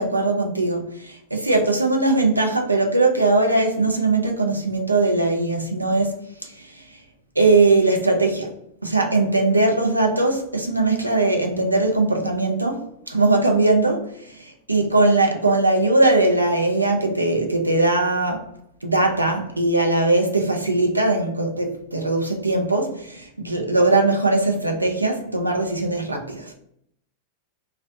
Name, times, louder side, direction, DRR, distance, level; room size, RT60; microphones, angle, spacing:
voice 1, 0.0-6.8 7.4-8.5 8.8-18.5 18.8-26.5, right 2 dB, 85° right, 0.4 m, -20 dB
2.5 x 2.0 x 2.5 m
figure-of-eight pair, 90°, 0 cm